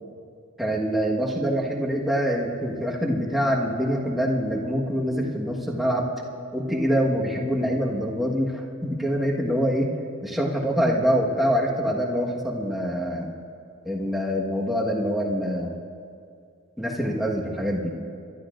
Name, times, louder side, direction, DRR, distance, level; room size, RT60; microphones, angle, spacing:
voice 1, 0.6-6.1 6.5-9.9 10.2-13.3 13.8-15.7 16.8-17.9, equal, ahead, -3 dB, 1.4 m, -25 dB
29.5 x 12.5 x 2.6 m, 2.4 s
head